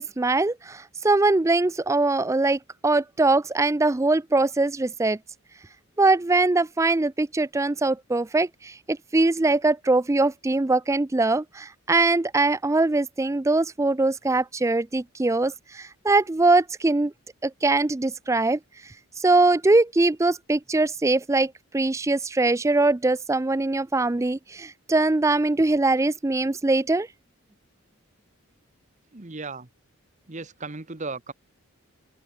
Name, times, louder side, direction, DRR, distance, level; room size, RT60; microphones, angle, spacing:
voice 1, 0.0-5.2 6.0-17.1 17.4-18.6 19.2-27.1, right 2 dB, 15° right, 0.4 m, -22 dB
voice 2, 29.1-29.7 30.3-31.3, right 3 dB, 35° right, 1.1 m, -36 dB
open air
head